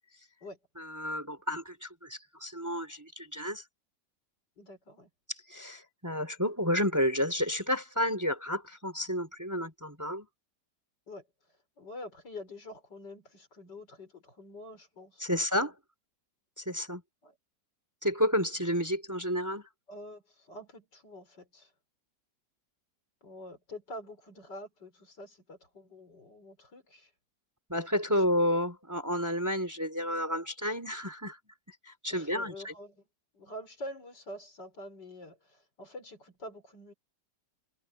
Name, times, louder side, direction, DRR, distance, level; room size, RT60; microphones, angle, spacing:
voice 1, 0.8-3.6 5.5-10.3 15.2-15.7 16.6-17.0 18.0-19.7 27.7-31.4 31.9-32.7, equal, 10° right, 3.5 m, -31 dB
voice 2, 4.6-5.1 11.1-11.3 11.8-15.4 17.2-17.4 19.9-21.7 23.2-27.1 28.1-28.3 32.1-33.1 33.3-36.9, left 1 dB, 75° left, 5.7 m, -46 dB
omnidirectional pair, 1.9 m